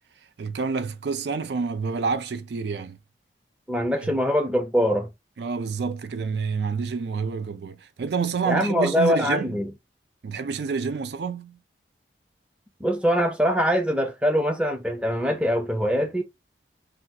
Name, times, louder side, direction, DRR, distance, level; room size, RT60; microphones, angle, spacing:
voice 1, 0.4-3.0 4.0-4.1 5.4-9.6 10.2-11.6, right 5 dB, 70° right, 0.4 m, -28 dB
voice 2, 3.7-5.1 8.5-9.7 12.8-16.2, equal, 5° right, 0.5 m, -23 dB
3.4 x 2.3 x 2.6 m
head